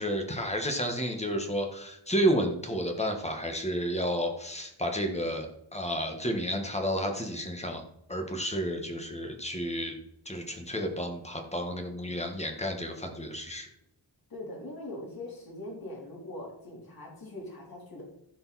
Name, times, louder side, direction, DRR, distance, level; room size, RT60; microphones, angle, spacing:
voice 1, 0.0-7.8 8.1-10.0 10.2-13.7, equal, 15° left, 3 dB, 1.6 m, -31 dB
voice 2, 14.3-18.0, left 1 dB, 55° left, -2 dB, 3.6 m, -42 dB
15.5 x 5.4 x 4.2 m, 0.78 s
wide cardioid pair, 160°, 44 cm